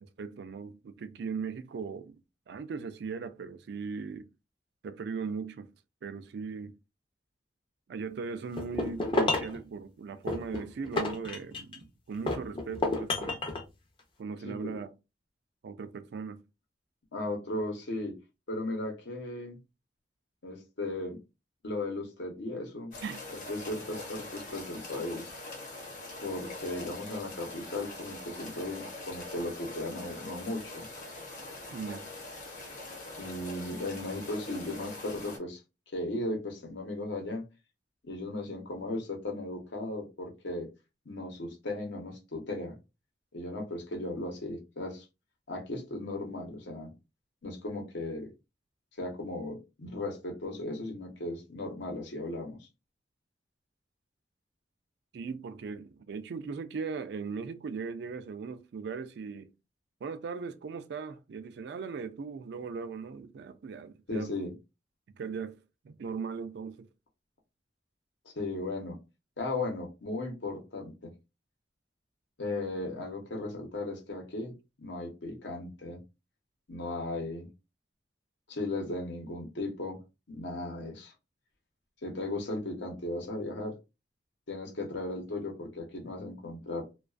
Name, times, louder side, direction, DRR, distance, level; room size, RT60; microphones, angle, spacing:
voice 1, 0.0-2.2 2.5-4.2 4.8-5.7 6.0-6.7 7.9-13.4 14.2-14.9 15.6-16.4 23.0-23.2 31.7-32.1 55.1-59.5 60.0-64.3 65.1-65.6 65.8-66.9, right 5 dB, 65° right, 0.3 m, -38 dB
sound 1, 8.6-9.6 10.3-11.8 12.3-13.6, left 2 dB, 30° left, 0.5 m, -30 dB
voice 2, 14.4-14.8 17.1-18.2 18.5-19.6 20.4-21.2 21.6-22.9 23.3-25.3 26.2-30.9 33.2-35.6 35.9-37.4 38.0-40.7 41.1-42.8 43.3-45.1 45.5-46.9 47.4-48.3 49.0-52.6 64.1-64.5 68.2-69.0 69.4-71.1 72.4-76.0 76.7-77.5 78.5-80.0 80.3-81.1 82.0-83.7 84.5-86.8, left 2 dB, 80° left, 0.8 m, -36 dB
sound 2, 22.9-35.4, left 2 dB, 50° left, 0.8 m, -43 dB
2.3 x 2.3 x 2.4 m
head